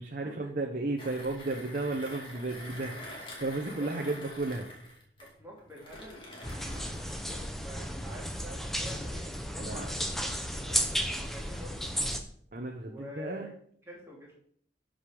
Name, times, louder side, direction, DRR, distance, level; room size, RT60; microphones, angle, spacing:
voice 1, 0.0-4.7 9.6-9.9 12.5-13.5, right 2 dB, 45° right, 2 dB, 1.0 m, -34 dB
Mechanisms, 1.0-7.2, left 1 dB, 30° left, 2.6 m, -46 dB
voice 2, 3.6-3.9 5.2-11.9 12.8-13.5 13.9-14.3, equal, 15° right, -5 dB, 2.9 m, -48 dB
sound 1, 6.4-12.2, equal, ahead, 0.8 m, -34 dB
12.5 x 5.2 x 5.2 m, 0.62 s
head